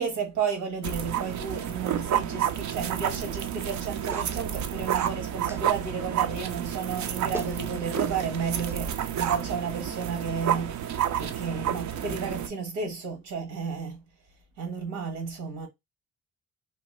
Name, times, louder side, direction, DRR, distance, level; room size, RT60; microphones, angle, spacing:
voice 1, 0.0-14.0 14.6-15.7, right 6 dB, 85° right, 1.2 m, -32 dB
sound 1, 0.8-12.5, right 10 dB, 70° right, 0.5 m, -30 dB
Clapping, 4.1-4.3 5.5-5.7 6.9-7.0 7.3-7.6 8.7-8.8, equal, 10° right, 0.4 m, -38 dB
2.8 x 2.1 x 3.2 m
cardioid pair, 90°, 30 cm